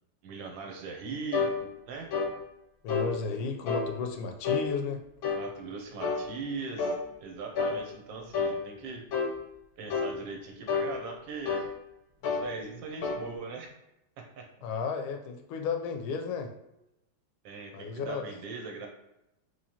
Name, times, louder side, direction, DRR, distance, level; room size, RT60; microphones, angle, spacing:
voice 1, 0.2-2.1 5.3-9.0 9.8-11.6 12.2-13.7 14.2-14.5 17.4-18.9, right 4 dB, 75° right, 2 dB, 1.3 m, -40 dB
sound 1, 1.3-1.6 2.1-2.3 2.9-3.1 3.7-3.9 4.4-4.7 5.2-5.5 6.0-6.3 6.8-7.0 7.6-7.8 8.3-8.6 9.1-9.3 9.9-10.2 10.7-10.9 11.5-11.7 12.2-12.5 13.0-13.2, left 5 dB, 70° left, 0.9 m, -29 dB
voice 2, 2.8-5.0 14.6-16.5 17.7-18.2, left 5 dB, 85° left, 4 dB, 1.4 m, -33 dB
3.8 x 3.1 x 2.8 m, 0.89 s
omnidirectional pair, 2.2 m